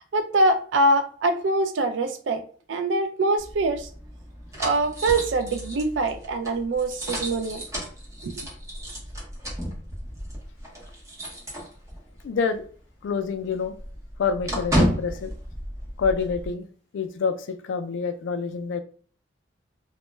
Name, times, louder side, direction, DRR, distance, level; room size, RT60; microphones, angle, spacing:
voice 1, 0.0-3.9 4.6-7.6 8.2-8.5, right 2 dB, 70° right, 6 dB, 0.4 m, -24 dB
sound 1, 3.4-12.2 12.5-12.7 13.0-16.5, equal, 15° right, 0.8 m, -32 dB
voice 2, 12.2-12.7 13.0-13.7 14.2-15.4 16.0-16.7 16.9-18.8, left 5 dB, 75° left, 9 dB, 0.3 m, -27 dB
2.1 x 2.1 x 3.0 m, 0.43 s
head